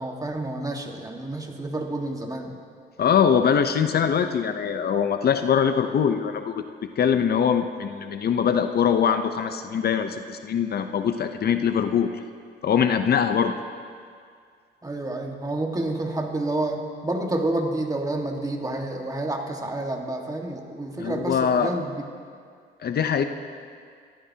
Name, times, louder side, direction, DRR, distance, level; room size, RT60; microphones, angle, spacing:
voice 1, 0.0-2.6 14.8-22.0, right 2 dB, 20° right, 2 dB, 1.6 m, -29 dB
voice 2, 3.0-6.6 7.0-12.1 12.6-13.5 21.0-21.7 22.8-23.2, left 7 dB, 55° left, 7 dB, 0.7 m, -22 dB
23.5 x 14.0 x 2.9 m, 2.1 s
cardioid pair, 90°, 20 cm